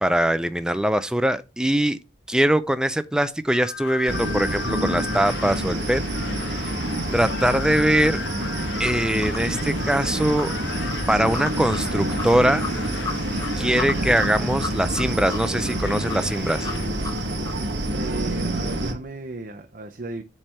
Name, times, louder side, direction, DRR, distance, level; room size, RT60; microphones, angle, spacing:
voice 1, 0.0-2.0 2.3-6.0 7.1-8.2 8.8-10.5 11.1-12.7 13.6-16.7, right 1 dB, 5° right, 0.3 m, -22 dB
sound 1, 3.5-16.9, left 7 dB, 80° left, 0.6 m, -37 dB
sound 2, 4.1-18.9, right 1 dB, 90° right, 1.1 m, -27 dB
sound 3, 7.6-17.7, left 4 dB, 20° left, 0.8 m, -37 dB
voice 2, 17.9-20.2, right 2 dB, 50° right, 0.6 m, -34 dB
7.3 x 3.3 x 5.5 m
head